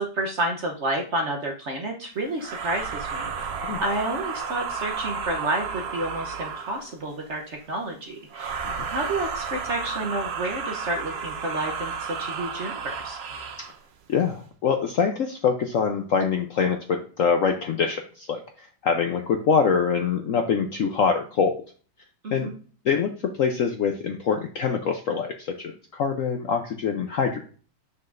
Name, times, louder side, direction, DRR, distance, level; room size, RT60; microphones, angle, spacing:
voice 1, 0.0-8.6 8.9-13.2 22.2-22.6, right 2 dB, 50° right, 1 dB, 0.9 m, -30 dB
sound 1, 2.4-6.9 8.3-13.8, right 5 dB, 75° right, 0.5 m, -32 dB
voice 2, 14.1-18.4 18.8-21.6 22.3-22.5 22.9-23.1 23.4-27.4, left 6 dB, 65° left, 4 dB, 0.8 m, -24 dB
7.4 x 6.0 x 2.5 m, 0.40 s
omnidirectional pair, 2.0 m